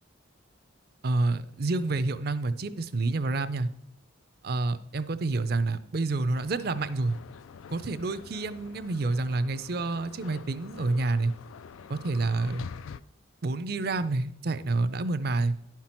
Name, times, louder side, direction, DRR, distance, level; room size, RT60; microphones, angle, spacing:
voice 1, 1.0-3.7 4.4-7.2 7.7-11.3 11.9-12.6 13.4-15.5, right 3 dB, 50° right, 13 dB, 0.5 m, -28 dB
sound 1, 6.3-13.0, left 6 dB, 85° left, 0.4 m, -46 dB
11.0 x 5.9 x 4.4 m, 0.78 s
head